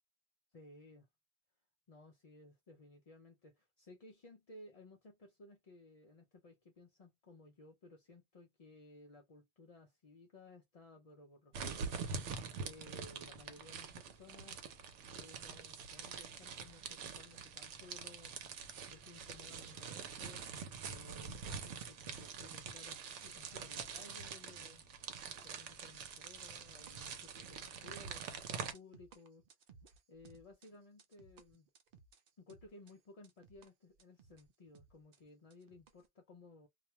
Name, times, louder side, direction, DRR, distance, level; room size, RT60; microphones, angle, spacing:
voice 1, 0.5-1.1 1.9-12.0 12.6-14.6 15.1-18.3 18.9-20.4 20.8-24.8 25.3-29.4 30.1-31.7 32.4-36.7, left 2 dB, 50° left, 0.4 m, -58 dB
sound 1, 11.5-28.7, right 6 dB, 90° right, 0.9 m, -45 dB
sound 2, 26.8-36.1, right 5 dB, 60° right, 0.6 m, -62 dB
2.3 x 2.2 x 2.8 m
omnidirectional pair, 1.2 m